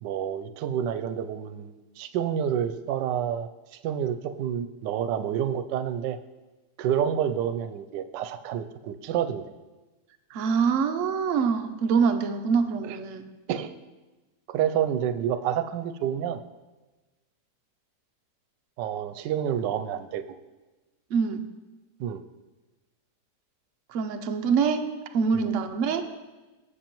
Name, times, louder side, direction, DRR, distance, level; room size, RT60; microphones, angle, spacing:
voice 1, 0.0-3.5 3.8-6.2 6.8-9.5 12.8-13.0 13.5-13.7 14.5-16.4 18.8-20.2 22.0-22.2 25.3-25.5, right 9 dB, 85° right, 11 dB, 1.2 m, -28 dB
voice 2, 10.3-13.3 21.1-21.4 23.9-24.8 25.1-26.0, right 6 dB, 60° right, 7 dB, 0.8 m, -25 dB
14.5 x 6.5 x 3.0 m, 1.2 s
omnidirectional pair, 1.9 m